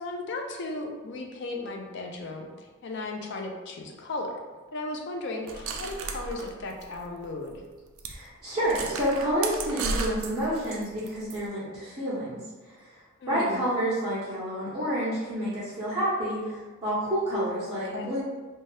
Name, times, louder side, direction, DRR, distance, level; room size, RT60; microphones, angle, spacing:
voice 1, 0.0-4.4 4.7-7.6 13.2-13.6 17.8-18.1, left 2 dB, 50° left, 3 dB, 0.4 m, -36 dB
sound 1, 5.5-7.3 7.6-7.7 8.0-8.2 8.6-11.4, right 4 dB, 70° right, 0.3 m, -34 dB
voice 2, 8.1-12.4 13.3-18.2, equal, 20° right, -13 dB, 0.7 m, -29 dB
2.7 x 2.2 x 3.1 m, 1.3 s
head